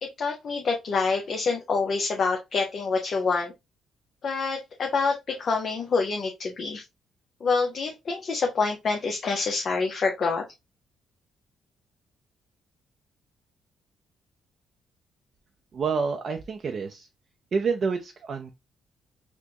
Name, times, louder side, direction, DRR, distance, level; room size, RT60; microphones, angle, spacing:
voice 1, 0.0-3.5 4.2-6.8 7.4-10.5, left 4 dB, 50° left, 0.6 m, -26 dB
voice 2, 15.7-17.1 17.5-18.5, right 5 dB, 50° right, 0.4 m, -28 dB
4.2 x 2.1 x 2.8 m
cardioid pair, 90°, 0 cm